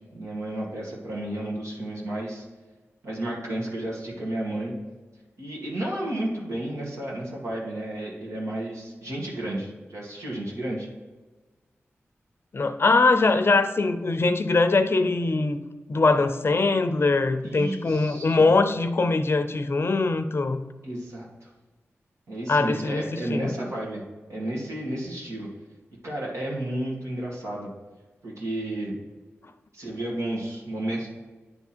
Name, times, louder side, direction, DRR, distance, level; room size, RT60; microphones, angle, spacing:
voice 1, 0.1-2.5 3.0-4.7 5.4-10.9 17.4-18.5 20.8-21.5 22.3-24.0 24.3-25.5 26.0-27.7 28.2-29.0 29.7-31.1, right 1 dB, 80° right, -4 dB, 2.1 m, -32 dB
voice 2, 12.5-15.6 15.9-20.6 22.5-23.5, left 3 dB, 55° left, 9 dB, 0.5 m, -22 dB
9.3 x 3.6 x 4.4 m, 1.3 s
cardioid pair, 50°, 5 cm